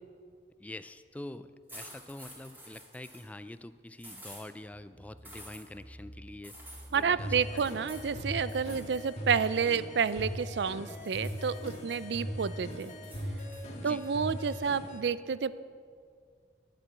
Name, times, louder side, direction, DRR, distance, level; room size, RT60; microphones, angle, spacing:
voice 1, 0.6-6.6 6.9-7.7 13.7-14.1, left 1 dB, 10° left, 13 dB, 0.3 m, -45 dB
sound 1, 1.7-3.3 4.0-4.4 5.2-5.6 6.4-7.0 7.6-8.1 8.5-9.1 9.4-10.5 10.9-12.0 12.4-13.6, equal, 10° right, 3.9 m, -50 dB
sound 2, 4.7-8.9, right 1 dB, 40° right, 1.9 m, -52 dB
voice 2, 6.9-12.9 13.8-15.6, right 6 dB, 65° right, 16 dB, 0.4 m, -30 dB
sound 3, 7.2-15.0, equal, 40° left, 1.8 m, -39 dB
10.5 x 8.3 x 9.3 m, 2.1 s
head